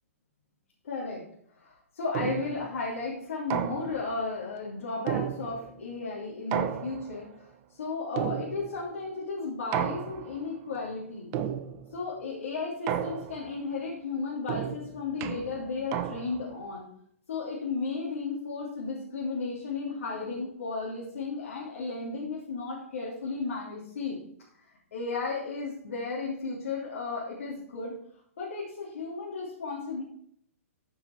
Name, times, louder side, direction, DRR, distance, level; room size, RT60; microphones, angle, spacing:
voice 1, 0.8-1.2 1.5-11.3 11.9-16.9 17.3-24.2 24.9-27.9 28.4-30.0, left 4 dB, 65° left, -6 dB, 3.3 m, -34 dB
sound 1, 2.1-2.7 3.5-4.2 5.1-5.8 6.5-7.3 8.2-8.9 9.7-10.5 11.3-12.0 12.9-13.6 14.5-16.5, right 9 dB, 35° right, 0.8 m, -33 dB
14.0 x 6.2 x 4.6 m, 0.67 s
figure-of-eight pair, 120°, 8 cm